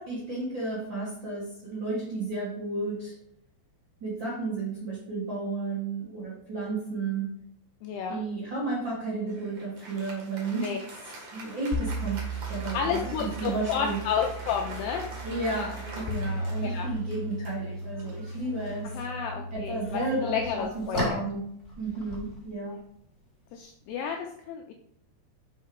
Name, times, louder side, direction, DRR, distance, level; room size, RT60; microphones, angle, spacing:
voice 1, 0.0-3.1 4.0-7.3 8.1-10.7 11.3-14.0 15.2-18.9 19.5-21.4 21.8-22.8, right 3 dB, 85° right, -7 dB, 1.0 m, -33 dB
voice 2, 7.8-8.2 10.5-10.8 12.7-15.1 16.6-16.9 18.9-21.2 23.5-24.7, left 7 dB, 85° left, 3 dB, 2.4 m, -31 dB
Applause, 9.3-19.1, right 2 dB, 55° right, 1.9 m, -45 dB
sound 1, 11.7-20.5, right 1 dB, 70° left, 2.6 m, -36 dB
sound 2, 12.8-24.1, left 1 dB, 25° left, 1.6 m, -42 dB
5.5 x 5.4 x 5.1 m, 0.70 s
omnidirectional pair, 5.4 m